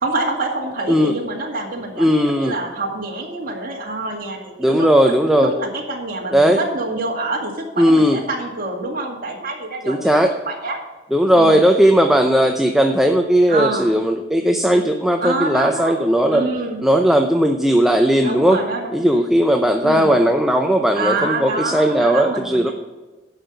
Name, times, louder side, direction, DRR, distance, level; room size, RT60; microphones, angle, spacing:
voice 1, 0.0-5.1 5.4-10.8 11.3-11.7 13.5-13.9 15.2-16.0 16.3-16.8 18.2-18.9 19.8-20.2 20.9-22.7, right 2 dB, 50° right, -2 dB, 2.1 m, -26 dB
voice 2, 2.0-2.5 4.6-5.5 6.3-6.6 7.8-8.2 9.9-10.3 11.1-16.5 16.8-18.6 18.9-22.7, equal, ahead, 4 dB, 0.6 m, -16 dB
12.0 x 5.7 x 6.7 m, 1.2 s
head